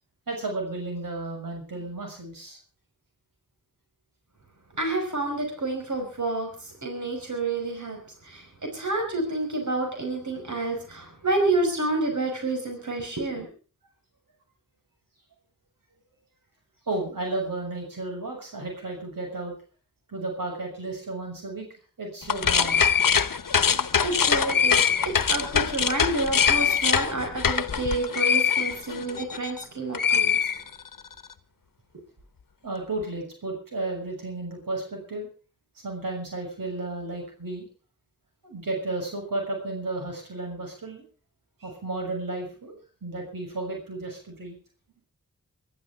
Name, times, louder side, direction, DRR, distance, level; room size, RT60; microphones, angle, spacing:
voice 1, 0.3-2.6 16.8-19.5 20.1-21.7 22.0-22.9 32.6-35.3 35.8-37.6 38.4-41.0 41.6-42.7 43.0-44.6, right 2 dB, 90° right, 2 dB, 6.5 m, -33 dB
voice 2, 4.7-8.0 8.2-13.5 23.6-30.4, right 2 dB, 60° right, 3 dB, 5.4 m, -29 dB
sound 1, 22.2-29.6 29.9-31.1, left 7 dB, 80° left, 1.0 m, -23 dB
24.5 x 12.5 x 3.6 m, 0.37 s
wide cardioid pair, 50°, 33 cm